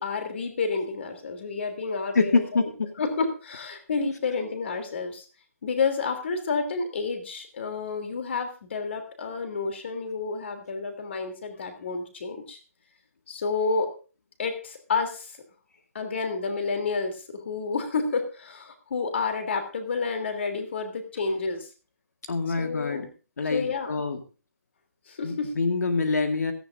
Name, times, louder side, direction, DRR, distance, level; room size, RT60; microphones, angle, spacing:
voice 1, 0.0-2.7 3.0-5.2 5.6-12.6 13.3-13.9 14.4-15.4 15.9-21.7 22.6-23.1 23.5-24.0 25.1-25.5, left 4 dB, 45° left, 6 dB, 3.0 m, -30 dB
voice 2, 2.1-2.9 22.3-23.1 23.4-24.2 25.2-26.5, left 4 dB, 85° left, 5 dB, 1.9 m, -25 dB
16.5 x 14.5 x 2.6 m, 0.34 s
hypercardioid pair, 175°, 9 cm